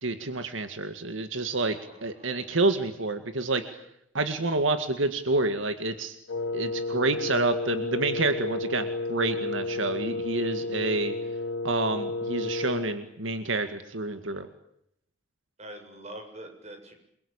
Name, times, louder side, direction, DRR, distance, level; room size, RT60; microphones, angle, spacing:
voice 1, 0.0-3.8 4.1-6.1 6.5-11.1 11.6-14.5, right 3 dB, 85° right, 8 dB, 2.1 m, -28 dB
voice 2, 1.6-2.4 9.6-10.0 14.1-14.4 15.6-16.9, right 1 dB, 35° right, 5 dB, 7.7 m, -46 dB
Wind instrument woodwind instrument, 6.3-13.0, left 2 dB, 65° left, 1.2 m, -32 dB
28.5 x 23.0 x 8.8 m, 0.76 s
head